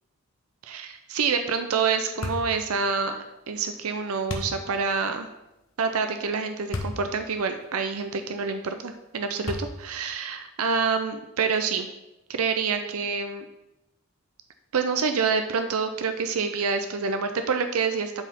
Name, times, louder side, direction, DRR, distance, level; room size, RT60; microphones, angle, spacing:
voice 1, 0.6-3.2 3.5-5.3 5.8-11.9 12.3-13.4 14.7-18.2, right 5 dB, 80° right, 7 dB, 0.6 m, -27 dB
sound 1, 2.2-2.6 4.3-4.6 6.7-7.0 7.6-7.7 9.5-9.9, left 2 dB, 65° left, 1.0 m, -31 dB
11.0 x 4.7 x 3.6 m, 0.94 s
head